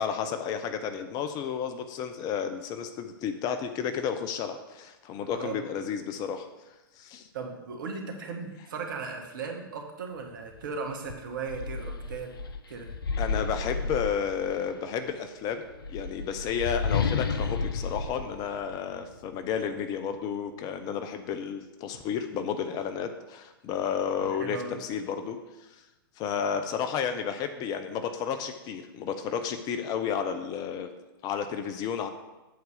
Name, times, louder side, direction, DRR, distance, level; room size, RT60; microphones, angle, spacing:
voice 1, 0.0-6.5 7.0-7.3 13.2-15.6 15.9-25.4 26.2-30.9 31.2-32.1, left 7 dB, 30° left, 8 dB, 0.7 m, -32 dB
voice 2, 5.2-5.6 7.3-12.3 12.7-12.9 24.2-24.8, right 4 dB, 55° right, 3 dB, 1.6 m, -37 dB
sound 1, 10.5-10.7 11.1-14.7 15.6-19.3, left 5 dB, 70° left, 0.8 m, -32 dB
7.9 x 4.6 x 6.8 m, 1.1 s
figure-of-eight pair, 105°, 12 cm